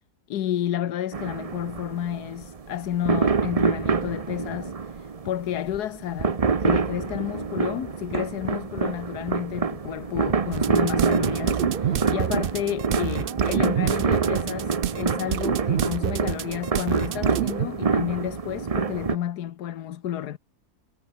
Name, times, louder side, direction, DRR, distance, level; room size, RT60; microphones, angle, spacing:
voice 1, 0.3-20.4, left 11 dB, 80° left, 1.4 m, -31 dB
sound 1, 1.1-19.2, right 5 dB, 30° right, 0.7 m, -26 dB
sound 2, 10.5-17.7, right 10 dB, 90° right, 0.4 m, -28 dB
omnidirectional pair, 1.7 m